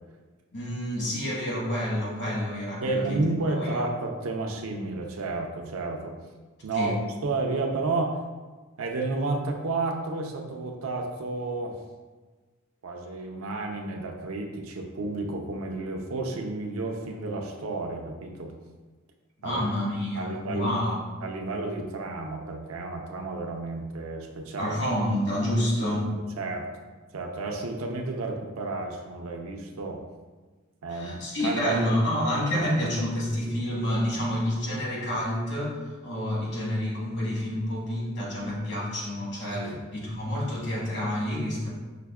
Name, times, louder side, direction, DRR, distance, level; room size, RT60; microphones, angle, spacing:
voice 1, 0.5-3.2 3.6-3.8 6.7-7.0 19.4-21.0 24.6-26.1 30.9-41.7, left 1 dB, 60° left, -5 dB, 1.1 m, -28 dB
voice 2, 2.8-6.2 6.6-6.9 7.2-8.2 8.8-11.8 12.8-18.6 19.4-19.6 20.2-20.8 21.2-24.8 25.8-26.7 27.1-30.0 30.8-31.8 32.6-32.7 39.6-39.8, right 3 dB, 85° right, 2 dB, 0.5 m, -31 dB
5.7 x 2.1 x 2.3 m, 1.3 s
head